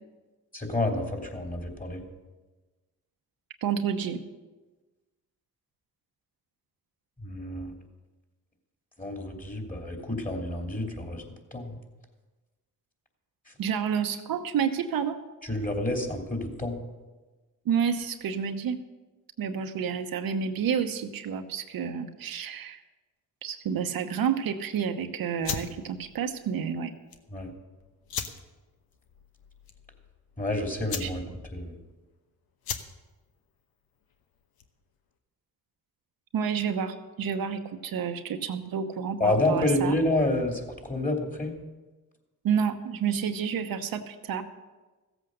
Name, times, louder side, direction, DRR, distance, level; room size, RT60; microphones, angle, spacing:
voice 1, 0.5-2.0 7.2-7.7 9.0-11.2 11.5-11.7 15.5-16.8 27.3-27.5 30.4-31.2 31.5-31.7 39.2-41.6, left 1 dB, 20° left, 2 dB, 3.0 m, -28 dB
voice 2, 3.6-4.2 13.6-15.2 17.6-18.8 19.4-22.8 23.4-26.9 31.0-31.1 36.3-39.9 42.4-44.4, right 7 dB, 75° right, 6 dB, 1.0 m, -29 dB
sound 1, 25.4-34.9, left 7 dB, 90° left, 1.0 m, -40 dB
15.0 x 8.0 x 6.4 m, 1.2 s
cardioid pair, 60°, 36 cm